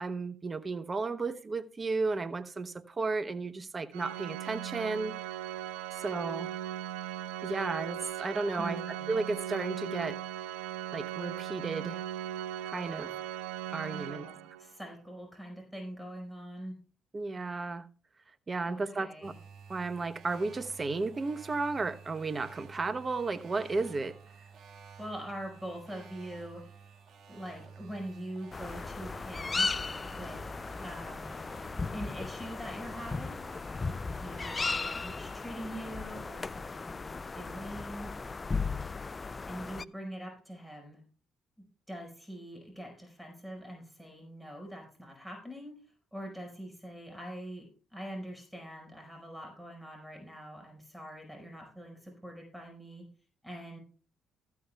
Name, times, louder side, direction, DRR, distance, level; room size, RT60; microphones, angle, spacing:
voice 1, 0.0-5.1 5.9-6.5 7.4-10.2 10.9-12.0 12.6-13.1 13.7-14.3 17.1-17.9 18.5-19.3 19.7-24.2, right 3 dB, 35° right, 0.9 m, -33 dB
Organ, 3.9-14.7, right 12 dB, 80° right, 0.5 m, -38 dB
voice 2, 8.6-9.2 12.9-13.2 13.9-16.8 18.7-19.4 25.0-26.7 27.3-29.7 30.0-30.4 30.8-31.4 31.9-33.4 34.2-38.1 39.5-41.0 41.9-45.8 46.1-53.0 53.4-53.8, equal, 5° right, 5.1 m, -43 dB
sound 1, 19.2-35.2, right 6 dB, 60° right, 1.7 m, -53 dB
sound 2, 28.5-39.8, left 4 dB, 30° left, 0.4 m, -36 dB
14.0 x 13.5 x 2.3 m
hypercardioid pair, 50°, 0 cm